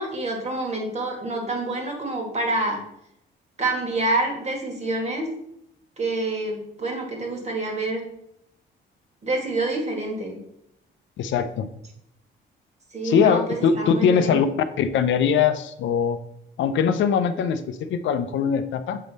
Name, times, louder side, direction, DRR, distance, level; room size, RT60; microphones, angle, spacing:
voice 1, 0.0-2.8 3.6-5.3 6.0-8.0 9.2-10.4 12.9-14.4, right 2 dB, 35° right, 2 dB, 1.6 m, -27 dB
voice 2, 11.2-11.7 13.0-14.5 14.8-16.2 16.6-19.0, left 7 dB, 75° left, 10 dB, 0.5 m, -21 dB
7.4 x 3.6 x 4.0 m, 0.78 s
cardioid pair, 90°, 20 cm